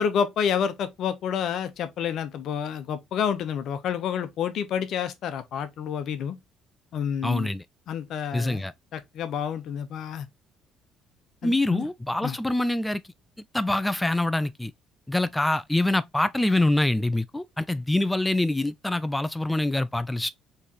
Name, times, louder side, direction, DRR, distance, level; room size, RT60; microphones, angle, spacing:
voice 1, 0.0-6.3 6.9-7.5 7.9-8.6 8.9-10.3 11.4-11.9 12.2-12.4, left 8 dB, 65° left, 0.8 m, -29 dB
voice 2, 7.2-7.6 8.3-8.7 11.4-13.0 13.5-14.7 15.1-20.3, left 1 dB, 10° left, 0.4 m, -25 dB
4.4 x 3.2 x 2.9 m
hypercardioid pair, 65°, 0 cm